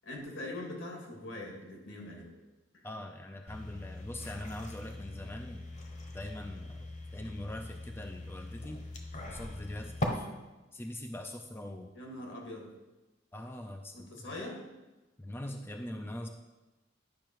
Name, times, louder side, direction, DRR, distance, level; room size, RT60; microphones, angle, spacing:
voice 1, 0.0-2.3 11.9-12.7 13.9-14.6, left 1 dB, 75° left, 0 dB, 2.2 m, -42 dB
voice 2, 2.8-5.7 6.1-8.8 9.3-10.3 10.7-11.9 13.3-14.4 15.2-16.3, left 1 dB, 10° left, 5 dB, 0.4 m, -42 dB
sound 1, 3.5-10.1, left 1 dB, 40° left, 1.1 m, -41 dB
10.0 x 5.7 x 4.6 m, 1.1 s
head